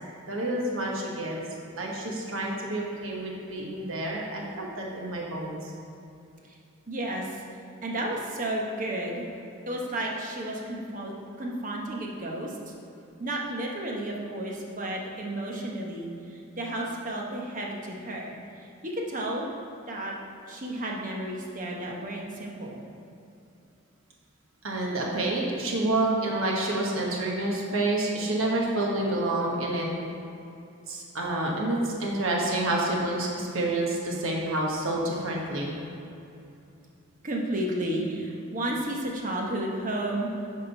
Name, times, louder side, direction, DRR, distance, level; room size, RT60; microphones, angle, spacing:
voice 1, 0.3-1.4 1.7-5.7 24.6-29.9 30.9-35.7, right 2 dB, 70° right, -2 dB, 1.2 m, -28 dB
voice 2, 6.9-7.4 7.8-9.2 9.7-12.7 13.2-19.5 19.9-20.1 20.5-22.8 37.2-40.3, right 1 dB, 40° right, -1 dB, 1.0 m, -32 dB
10.0 x 3.7 x 5.5 m, 2.7 s
head